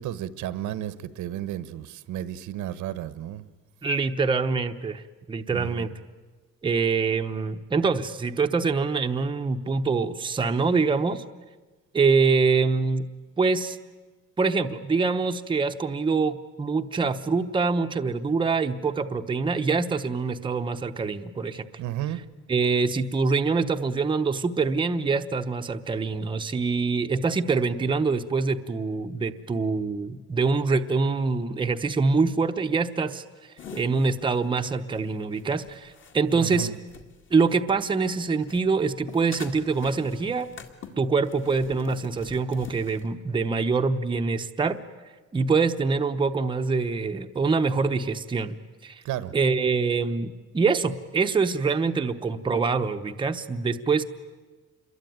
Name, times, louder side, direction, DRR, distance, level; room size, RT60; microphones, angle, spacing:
voice 1, 0.0-3.5 5.5-5.9 21.8-22.2 36.3-36.8 49.0-49.3, right 12 dB, 85° right, 15 dB, 1.3 m, -33 dB
voice 2, 3.8-5.0 5.3-5.9 6.6-11.2 11.9-13.0 13.4-13.8 14.4-21.7 22.5-33.2 33.7-36.7 37.3-40.5 41.0-44.8 45.3-48.6 48.8-49.0 49.3-54.0, right 4 dB, 15° right, 6 dB, 0.9 m, -25 dB
sound 1, 33.6-38.1 38.4-43.1, left 6 dB, 40° left, 2.3 m, -45 dB
28.0 x 22.0 x 9.3 m, 1.3 s
cardioid pair, 170°, 30 cm